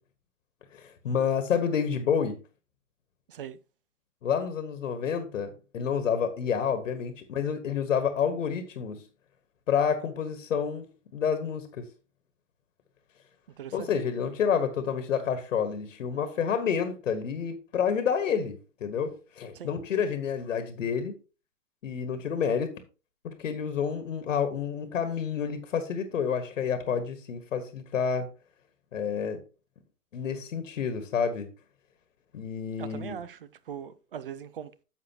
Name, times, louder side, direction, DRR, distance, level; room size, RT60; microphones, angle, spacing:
voice 1, 0.7-2.4 4.2-9.0 9.7-11.9 13.7-21.1 21.8-22.7 23.2-28.3 28.9-29.4 30.1-31.5 32.3-33.2, left 7 dB, 50° left, 1.5 m, -29 dB
voice 2, 13.6-13.9 19.5-19.7 32.8-33.4 33.7-34.7, right 8 dB, 35° right, 0.6 m, -40 dB
10.5 x 7.1 x 2.9 m
figure-of-eight pair, 125°, 47 cm